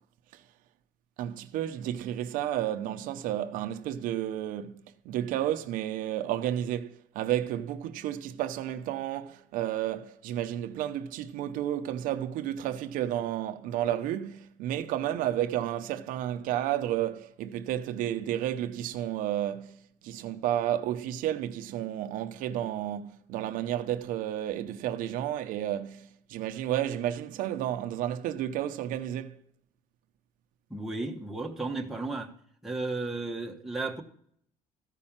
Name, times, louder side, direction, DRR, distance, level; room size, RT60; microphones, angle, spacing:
voice 1, 1.2-29.4, right 11 dB, 75° right, 0.8 m, -32 dB
voice 2, 30.7-32.3 32.6-34.0, right 3 dB, ahead, 1.2 m, -34 dB
14.5 x 5.4 x 7.3 m
cardioid pair, 160°, 14 cm